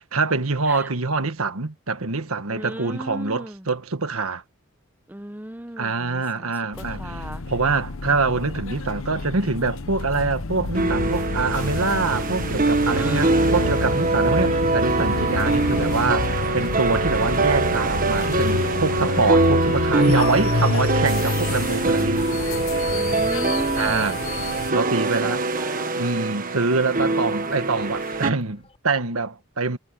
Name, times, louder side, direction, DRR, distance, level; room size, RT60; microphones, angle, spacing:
voice 1, 0.1-4.4 5.8-7.0 7.5-22.3 23.8-24.2 24.7-25.4 26.0-29.8, right 4 dB, 85° right, 1.6 m, -25 dB
voice 2, 2.5-3.7 5.1-7.4 12.8-13.7 22.9-24.3 24.8-26.1, right 1 dB, 10° right, 0.8 m, -35 dB
sound 1, 6.7-24.7, left 3 dB, 70° left, 0.9 m, -28 dB
sound 2, 10.8-28.3, right 3 dB, 40° right, 1.3 m, -23 dB
sound 3, 21.3-28.8, left 2 dB, 30° left, 6.8 m, -46 dB
head